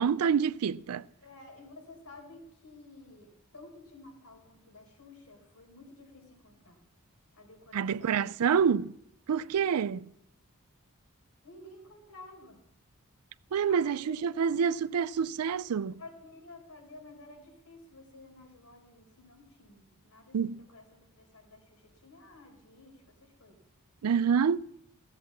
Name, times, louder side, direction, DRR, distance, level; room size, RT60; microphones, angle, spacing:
voice 1, 0.0-1.0 7.7-8.9 9.3-10.1 13.5-16.0 20.3-20.6 24.0-24.6, right 7 dB, 85° right, 0.4 m, -27 dB
voice 2, 1.2-6.8 7.3-8.6 9.3-10.0 11.4-12.6 13.7-14.2 16.0-23.6, left 2 dB, 90° left, 4.5 m, -52 dB
16.5 x 7.7 x 7.2 m
head